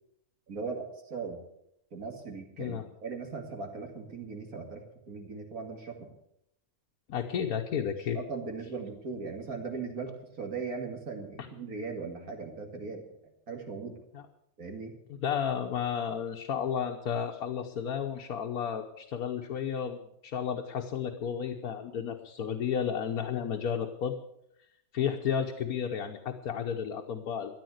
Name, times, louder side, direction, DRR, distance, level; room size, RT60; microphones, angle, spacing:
voice 1, 0.5-1.4 1.9-6.1 8.1-13.2 13.5-14.0 14.6-15.0, right 4 dB, 85° right, 3 dB, 2.8 m, -39 dB
voice 2, 7.1-8.2 11.4-11.5 14.1-14.2 15.1-24.2 24.9-27.6, left 8 dB, 85° left, 3 dB, 1.5 m, -32 dB
14.0 x 10.0 x 7.9 m, 0.77 s
omnidirectional pair, 1.5 m